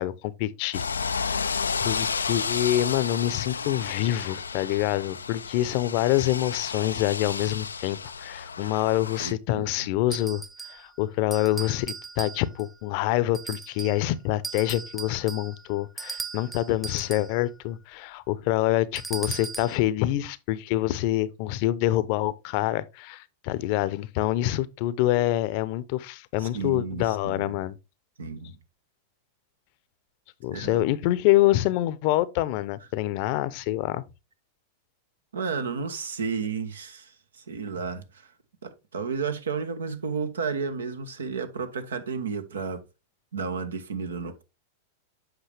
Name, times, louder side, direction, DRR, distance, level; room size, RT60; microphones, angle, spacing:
voice 1, 0.0-10.4 10.7-27.8 30.4-34.0, left 15 dB, 55° left, 0.7 m, -26 dB
Cars Passing, 0.7-9.3, left 5 dB, 90° left, 0.3 m, -32 dB
voice 2, 9.2-9.9 26.4-27.6 28.2-28.6 30.5-30.9 35.3-38.3 38.6-42.8 43.3-44.4, right 5 dB, 85° right, 1.2 m, -32 dB
sound 1, 10.1-10.9 11.3-12.7 13.3-14.1 14.4-17.4 19.0-19.8, right 4 dB, 5° right, 0.9 m, -38 dB
8.1 x 5.6 x 3.4 m
hypercardioid pair, 100°, 0 cm